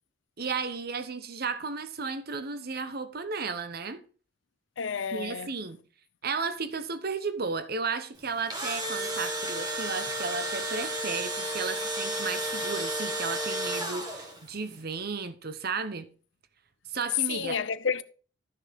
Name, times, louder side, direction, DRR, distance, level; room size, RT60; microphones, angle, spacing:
voice 1, 0.4-4.0 5.1-5.8 6.2-16.1 16.9-17.6, right 4 dB, 55° right, 1.0 m, -34 dB
voice 2, 4.8-5.5 17.3-18.0, left 6 dB, 80° left, 0.7 m, -31 dB
Engine / Drill, 8.2-14.5, right 1 dB, 20° right, 2.0 m, -32 dB
13.0 x 6.5 x 3.5 m
head